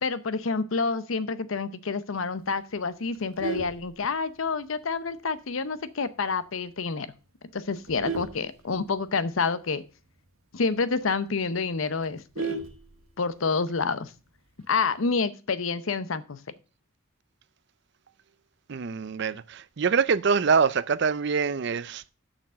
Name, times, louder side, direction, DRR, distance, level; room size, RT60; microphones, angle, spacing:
voice 1, 0.0-7.1 7.5-9.8 10.5-12.6 13.2-14.1 14.7-16.4, left 4 dB, 75° left, 0.7 m, -28 dB
Vehicle horn car horn honking, 3.1-4.6 5.1-5.3 5.6-5.7 6.1-6.2 6.5-6.9 7.5-9.3 9.7-9.8 10.0-10.1 10.5-10.6 11.0-11.1 11.4-13.4 14.6-15.0, right 3 dB, 85° right, 1.4 m, -36 dB
voice 2, 18.7-22.1, right 5 dB, 55° right, 0.5 m, -25 dB
6.8 x 5.9 x 7.3 m
head